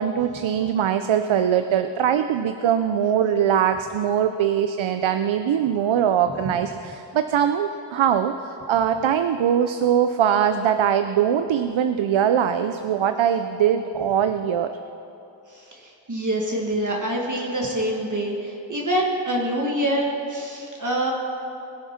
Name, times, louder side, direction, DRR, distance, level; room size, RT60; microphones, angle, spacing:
voice 1, 0.0-14.7, right 9 dB, 80° right, 9 dB, 0.6 m, -22 dB
voice 2, 15.5-21.1, right 1 dB, 40° right, -2 dB, 1.6 m, -26 dB
21.0 x 7.3 x 5.8 m, 2.8 s
wide cardioid pair, 85°, 47 cm